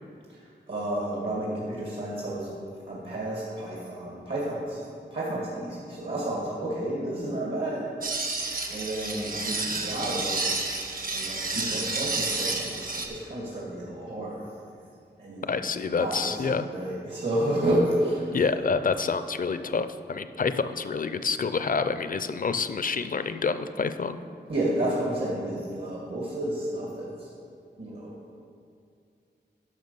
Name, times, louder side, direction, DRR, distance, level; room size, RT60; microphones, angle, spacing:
voice 1, 0.3-7.9 8.4-14.5 15.2-15.7 16.0-18.4 24.5-27.3 27.8-28.2, right 1 dB, 70° right, -5 dB, 1.9 m, -31 dB
sound 1, 8.0-13.1, right 3 dB, 50° right, 1.0 m, -30 dB
voice 2, 15.5-16.7 18.3-24.2, left 5 dB, 50° left, 11 dB, 0.4 m, -28 dB
10.5 x 6.0 x 5.4 m, 2.4 s
wide cardioid pair, 95°, 18 cm